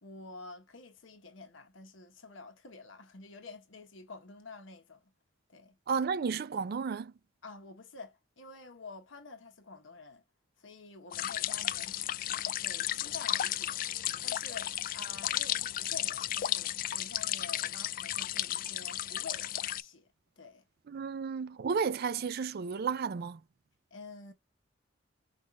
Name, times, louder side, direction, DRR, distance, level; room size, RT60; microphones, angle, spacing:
voice 1, 0.0-5.1 5.5-5.8 7.4-10.2 10.6-12.0 12.3-20.1 20.4-20.6 23.9-24.3, left 3 dB, 75° left, 1.2 m, -49 dB
voice 2, 5.9-7.1 20.9-23.4, right 5 dB, 55° right, 0.4 m, -32 dB
sound 1, 11.1-19.8, left 12 dB, 45° left, 0.3 m, -34 dB
5.3 x 2.5 x 3.3 m
head